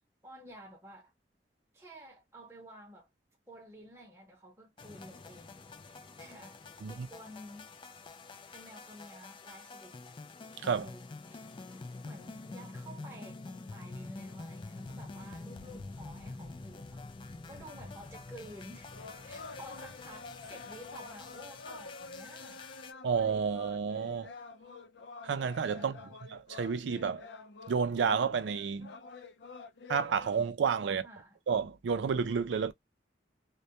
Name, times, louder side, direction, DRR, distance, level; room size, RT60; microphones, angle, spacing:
voice 1, 0.2-1.1 1.7-3.1 3.5-6.6 6.9-7.7 8.3-10.0 10.7-11.0 11.3-11.4 11.7-22.6 25.8-26.1 30.9-31.4, equal, 15° right, 0.7 m, -52 dB
sound 1, 4.8-22.9, left 3 dB, 30° left, 0.3 m, -47 dB
sound 2, 18.9-30.3, left 4 dB, 80° left, 0.5 m, -49 dB
voice 2, 23.0-24.3 25.2-26.0 26.3-27.2 27.7-28.9 29.9-31.1 31.5-32.7, right 6 dB, 90° right, 0.4 m, -30 dB
2.2 x 2.1 x 2.8 m
head